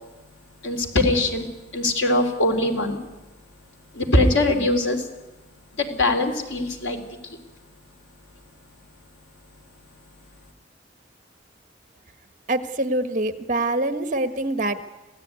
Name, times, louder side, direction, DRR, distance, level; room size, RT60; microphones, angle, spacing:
voice 1, 0.6-1.5 1.7-3.0 3.9-5.1 5.8-7.0 7.3-7.4, left 2 dB, 90° left, 5 dB, 3.7 m, -22 dB
voice 2, 12.5-14.8, right 2 dB, 45° right, 10 dB, 1.4 m, -25 dB
26.5 x 16.5 x 9.5 m, 1.1 s
head